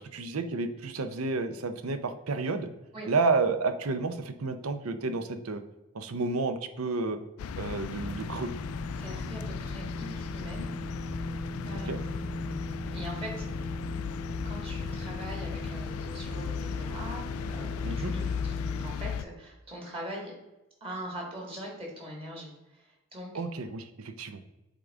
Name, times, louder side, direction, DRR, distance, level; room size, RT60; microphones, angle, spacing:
voice 1, 0.0-2.7 3.1-5.6 5.9-7.2 7.6-8.5 11.7-12.0 17.8-18.1 23.3-24.4, right 3 dB, 85° right, 9 dB, 0.6 m, -31 dB
sound 1, 7.4-19.3, left 6 dB, 85° left, 0.3 m, -36 dB
sound 2, 7.9-18.9, equal, ahead, 0.8 m, -39 dB
voice 2, 8.9-10.7 11.6-13.5 14.4-20.3 20.8-23.3, equal, 25° right, -2 dB, 1.7 m, -42 dB
8.3 x 3.8 x 3.5 m, 0.99 s
head